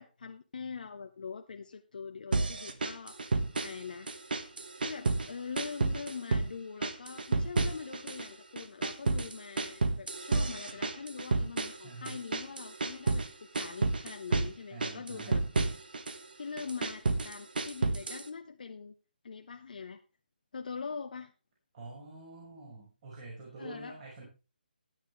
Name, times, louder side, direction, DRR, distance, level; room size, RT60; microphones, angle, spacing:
voice 1, 0.0-4.1 4.8-15.4 16.4-18.9 19.2-20.0 20.5-21.3 23.6-23.9, left 5 dB, 55° left, 4 dB, 1.0 m, -43 dB
sound 1, 2.3-3.8 4.1-5.3 5.6-6.5 6.8-8.3 8.6-13.3 13.5-14.5 14.8-16.2 16.6-18.3, right 3 dB, 65° right, 1.6 m, -31 dB
voice 2, 11.8-12.2 14.7-15.4 21.7-24.2, right 3 dB, 35° right, -3 dB, 5.6 m, -46 dB
13.5 x 10.0 x 3.4 m, 0.31 s
figure-of-eight pair, 150°, 5 cm